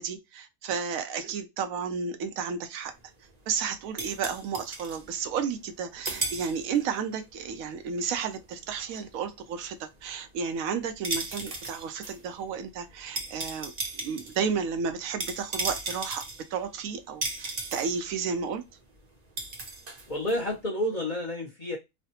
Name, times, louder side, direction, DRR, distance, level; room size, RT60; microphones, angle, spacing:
voice 1, 0.0-2.9 3.5-16.2 16.5-18.6, right 6 dB, 75° right, 1.0 m, -32 dB
sound 1, 2.9-5.8 6.0-7.0 7.3-20.6, right 2 dB, 40° right, 0.7 m, -37 dB
voice 2, 20.1-21.8, left 1 dB, 35° left, 0.7 m, -30 dB
3.2 x 2.0 x 2.8 m
omnidirectional pair, 1.5 m